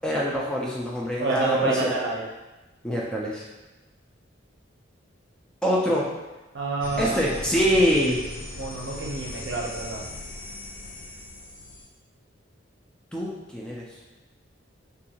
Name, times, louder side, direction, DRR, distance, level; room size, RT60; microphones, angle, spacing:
voice 1, 0.0-1.9 2.8-3.5 5.6-6.1 7.0-8.2 13.1-13.9, equal, 5° left, -4 dB, 0.3 m, -24 dB
voice 2, 1.2-2.2 6.5-7.4 8.6-10.0, right 2 dB, 65° right, -2 dB, 0.6 m, -28 dB
sound 1, 6.8-11.9, left 1 dB, 80° left, 0.5 m, -38 dB
2.5 x 2.3 x 2.8 m, 1.1 s
head